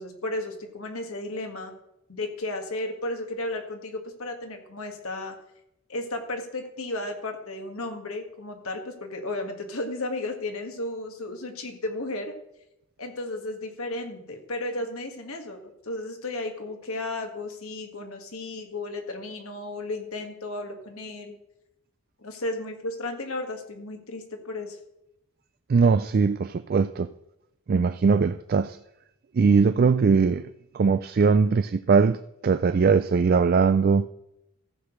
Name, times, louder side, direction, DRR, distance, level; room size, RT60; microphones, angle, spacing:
voice 1, 0.0-1.8 2.1-5.4 5.9-12.3 13.0-21.4 22.2-24.8, left 2 dB, 80° left, 1.8 m, -34 dB
voice 2, 25.7-27.1 27.7-28.8 29.3-30.5 30.7-34.1, right 5 dB, 45° right, 0.3 m, -21 dB
14.5 x 5.0 x 6.5 m
head